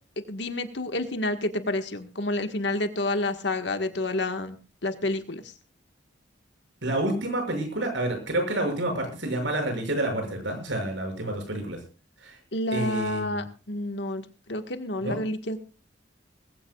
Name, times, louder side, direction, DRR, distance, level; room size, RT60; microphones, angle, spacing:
voice 1, 0.3-4.6 4.8-5.5 12.5-15.6, left 1 dB, 65° left, 7 dB, 1.6 m, -29 dB
voice 2, 6.8-11.8 12.2-12.3 12.7-13.4 15.0-15.2, right 1 dB, 80° right, 4 dB, 6.6 m, -29 dB
20.5 x 16.0 x 2.4 m, 0.32 s
head